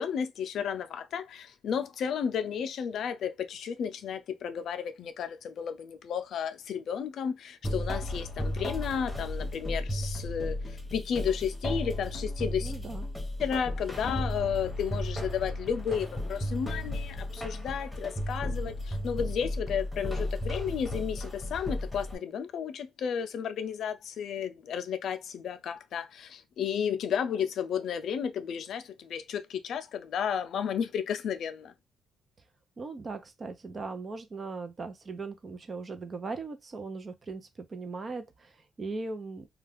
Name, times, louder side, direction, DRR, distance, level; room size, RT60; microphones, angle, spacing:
voice 1, 0.0-12.7 13.4-31.7, left 7 dB, 70° left, 0.4 m, -33 dB
sound 1, 7.6-22.1, left 1 dB, 10° left, 1.0 m, -34 dB
voice 2, 12.6-13.1 32.8-39.5, right 3 dB, 35° right, 0.6 m, -39 dB
2.3 x 2.3 x 3.5 m
cardioid pair, 90°, 0 cm